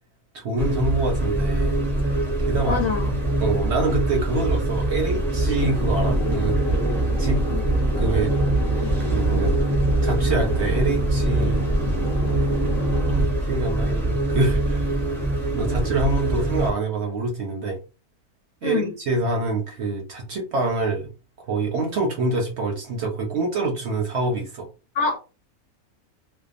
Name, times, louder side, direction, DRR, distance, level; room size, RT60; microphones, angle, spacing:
voice 1, 0.3-2.1 2.4-2.8 3.1-6.6 7.2-7.4 8.0-8.4 9.1-9.5 10.0-11.6 13.1-15.0 15.5-17.8 18.6-21.1 21.4-24.7, right 3 dB, 60° right, 0.7 m, -26 dB
sound 1, 0.6-16.7, right 1 dB, 5° left, 0.4 m, -23 dB
voice 2, 2.7-3.1 18.6-18.9 24.9-25.2, left 5 dB, 65° left, 1.0 m, -24 dB
sound 2, 5.6-13.2, left 1 dB, 50° left, 0.7 m, -29 dB
2.6 x 2.3 x 2.4 m
omnidirectional pair, 1.6 m